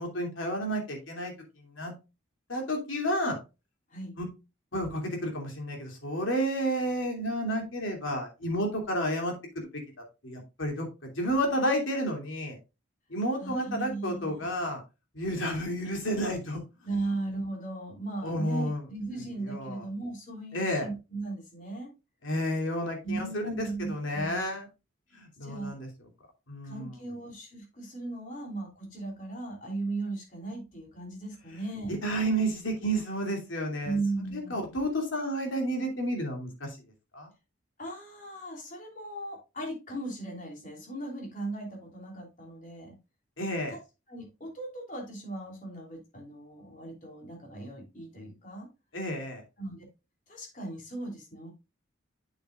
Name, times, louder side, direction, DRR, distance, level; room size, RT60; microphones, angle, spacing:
voice 1, 0.0-1.3 1.6-1.9 2.5-3.4 4.2-4.3 4.7-9.3 9.7-9.8 10.2-12.6 13.1-14.8 15.1-16.6 18.2-18.8 19.4-19.8 20.5-20.9 22.2-24.7 25.1-25.9 26.5-26.9 31.9-34.0 34.3-36.7 37.1-37.3 43.4-43.8 48.9-49.4, equal, 85° left, 2 dB, 2.8 m, -31 dB
voice 2, 13.4-14.5 16.8-21.9 23.0-24.5 25.4-25.7 26.6-32.0 33.8-34.6 37.8-42.9 43.7-43.8 44.1-48.7 49.6-49.8 50.3-51.5, right 2 dB, 40° left, 0 dB, 3.1 m, -37 dB
8.4 x 7.1 x 2.4 m, 0.27 s
head